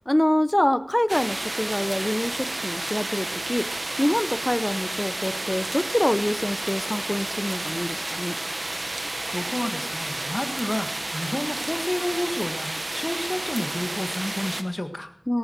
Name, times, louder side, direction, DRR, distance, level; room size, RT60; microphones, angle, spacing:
voice 1, 0.1-3.7 4.0-8.4 15.3-15.4, left 1 dB, 25° left, 12 dB, 0.9 m, -25 dB
sound 1, 1.1-14.6, right 2 dB, 65° right, 1.1 m, -31 dB
voice 2, 9.3-15.1, left 1 dB, 40° left, 7 dB, 1.6 m, -30 dB
18.5 x 13.5 x 4.5 m, 0.72 s
wide cardioid pair, 45°, 0 cm